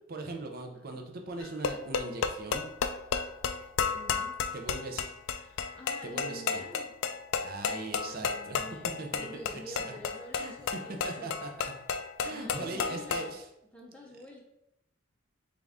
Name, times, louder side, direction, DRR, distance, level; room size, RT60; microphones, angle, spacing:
voice 1, 0.1-2.6 4.5-5.0 6.0-6.6 7.4-8.7 9.0-9.9 10.3-10.5 11.0-11.7 12.2-13.5, right 3 dB, 45° right, 3 dB, 0.6 m, -40 dB
sound 1, 1.4-13.3, left 6 dB, 70° left, 0.3 m, -33 dB
voice 2, 3.9-4.4 5.4-6.9 7.7-11.4 12.3-13.3 13.7-14.4, left 1 dB, 5° left, -3 dB, 0.6 m, -47 dB
3.8 x 3.5 x 3.5 m, 0.84 s
head